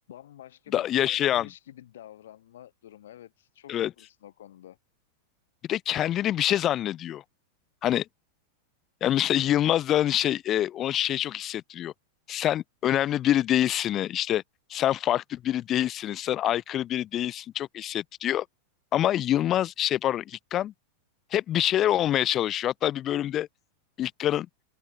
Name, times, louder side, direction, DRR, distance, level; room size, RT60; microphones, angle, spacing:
voice 1, 0.1-4.8, left 12 dB, 60° left, 0.9 m, -49 dB
voice 2, 0.7-1.5 3.7-3.9 5.7-7.2 7.8-8.1 9.0-11.9 12.3-14.4 14.7-18.5 18.9-20.7 21.3-23.5 24.0-24.5, left 12 dB, 30° left, 0.3 m, -26 dB
open air
figure-of-eight pair, 90°, 0 cm